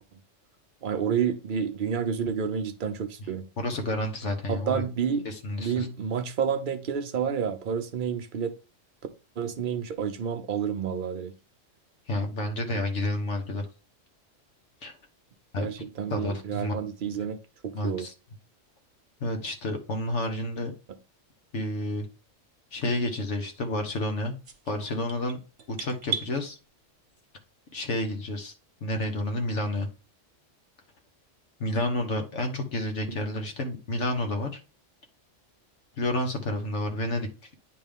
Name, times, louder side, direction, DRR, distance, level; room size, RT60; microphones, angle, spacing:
voice 1, 0.8-3.5 4.5-5.3 5.6-8.5 9.4-11.3 15.6-17.4 17.6-18.1, right 7 dB, 50° right, 0.8 m, -29 dB
voice 2, 3.6-4.8 5.2-5.9 12.1-13.7 14.8-14.9 15.5-15.7 16.1-16.7 17.7-18.1 19.2-20.7 21.5-22.1 22.7-24.4 24.7-25.4 25.7-26.6 27.7-28.5 28.8-29.9 31.6-34.5 36.0-37.3, left 1 dB, 65° left, 1.5 m, -30 dB
sound 1, 24.4-26.3, right 8 dB, 65° right, 1.2 m, -35 dB
9.5 x 3.4 x 3.5 m
omnidirectional pair, 1.3 m